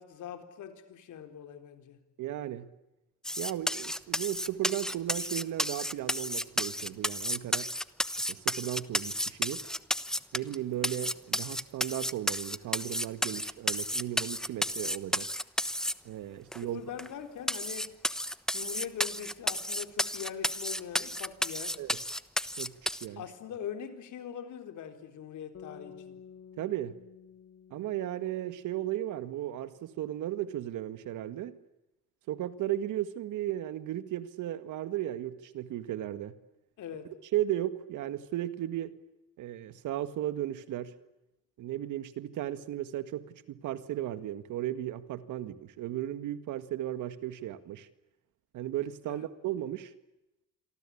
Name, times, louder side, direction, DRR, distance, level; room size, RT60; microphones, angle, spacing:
voice 1, 0.0-2.0 16.6-17.9 18.5-21.8 23.2-26.2 36.8-37.1 49.1-49.3, left 8 dB, 75° left, 7 dB, 4.1 m, -42 dB
voice 2, 2.2-2.7 3.4-7.7 8.3-9.6 10.3-15.3 16.0-16.8 21.8-22.0 22.6-23.2 26.6-27.0 27.7-31.6 32.3-36.4 37.3-38.9 39.4-40.9 41.6-47.9 48.5-49.9, right 13 dB, 85° right, 12 dB, 1.9 m, -35 dB
sound 1, 3.2-10.6 10.8-15.9 16.5-16.6 17.0-17.1 17.5-23.1, equal, ahead, 1.1 m, -32 dB
sound 2, 25.5-29.8, left 7 dB, 55° left, 2.1 m, -52 dB
28.0 x 23.5 x 8.7 m, 0.92 s
cardioid pair, 90°, 30 cm